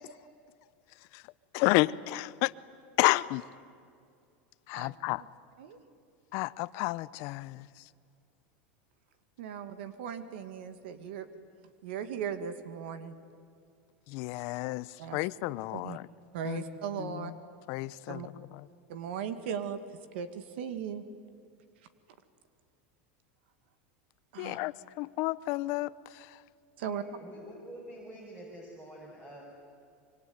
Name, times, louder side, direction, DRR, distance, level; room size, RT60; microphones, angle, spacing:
voice 1, 1.5-2.5 3.0-3.4 4.7-5.2 6.3-7.7 14.1-16.1 16.4-16.6 17.0-17.3 17.7-18.3 24.4-25.9, left 20 dB, 50° left, 18 dB, 0.7 m, -30 dB
voice 2, 9.4-11.3 11.8-13.1 15.0-15.2 15.7-16.0 16.3-17.3 18.1-18.3 18.9-19.8 20.1-21.0 24.3-24.6 26.8-27.0, right 8 dB, 75° right, 10 dB, 2.0 m, -37 dB
voice 3, 26.8-29.4, right 1 dB, 15° right, -3 dB, 6.1 m, -47 dB
25.0 x 24.5 x 9.5 m, 2.4 s
supercardioid pair, 150°, 6 cm